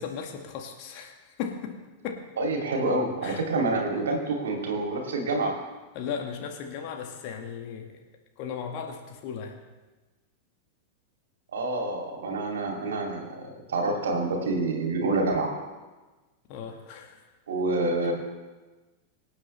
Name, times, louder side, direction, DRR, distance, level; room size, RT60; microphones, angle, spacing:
voice 1, 0.0-1.8 2.0-2.2 3.2-3.4 6.0-7.9 8.4-9.6 16.5-17.2, left 7 dB, 45° left, 3 dB, 1.8 m, -36 dB
voice 2, 2.4-5.6 11.5-15.6 17.5-18.1, right 2 dB, 65° right, 1 dB, 2.7 m, -27 dB
24.0 x 8.4 x 3.3 m, 1.2 s
figure-of-eight pair, 90°, 0 cm